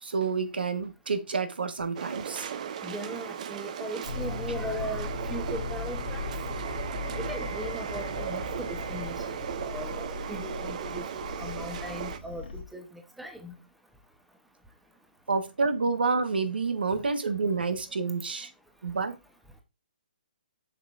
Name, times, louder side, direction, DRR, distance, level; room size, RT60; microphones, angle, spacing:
voice 1, 0.0-2.5 15.3-18.5 18.8-19.2, right 4 dB, 85° right, 1.2 m, -28 dB
sound 1, 2.0-12.2, right 8 dB, 45° right, 0.7 m, -36 dB
voice 2, 2.8-6.3 7.2-13.6, equal, ahead, 0.8 m, -39 dB
sound 2, 4.0-12.6, left 4 dB, 75° left, 1.8 m, -38 dB
7.1 x 6.1 x 2.5 m
hypercardioid pair, 150°, 5 cm